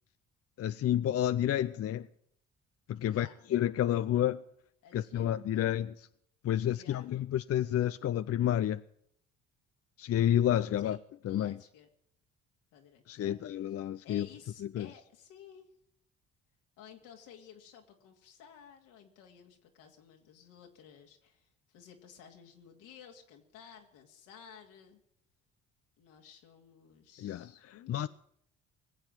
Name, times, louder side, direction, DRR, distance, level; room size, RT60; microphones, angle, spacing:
voice 1, 0.6-2.1 2.9-4.4 4.9-6.1 6.4-8.8 10.0-11.0 11.2-11.6 13.1-14.3 14.7-14.9 27.2-28.1, left 11 dB, 50° left, 0.6 m, -30 dB
voice 2, 3.1-3.4 4.8-5.8 6.7-7.1 10.8-11.9 12.7-13.4 13.7-13.8 14.0-15.7 16.8-25.0 26.0-28.1, left 8 dB, 80° left, 2.5 m, -55 dB
20.0 x 7.8 x 8.9 m
hypercardioid pair, 60°, 31 cm